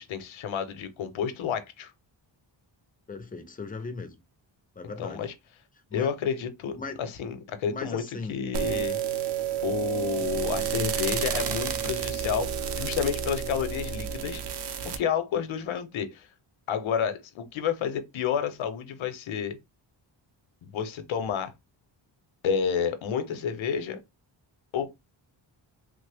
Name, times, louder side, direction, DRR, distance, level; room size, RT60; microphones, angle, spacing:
voice 1, 0.0-1.9 4.8-5.3 5.9-8.0 8.3-9.0 9.6-14.4 14.8-16.3 16.7-19.6 20.6-21.5 22.4-24.0 24.7-24.9, left 7 dB, 85° left, 0.7 m, -30 dB
voice 2, 3.1-4.2 4.8-5.2 5.9-6.1 6.7-7.0 7.7-8.4, left 4 dB, 20° left, 0.3 m, -37 dB
sound 1, 8.5-15.0, right 8 dB, 60° right, 0.5 m, -30 dB
3.1 x 2.1 x 3.3 m
wide cardioid pair, 170°, 47 cm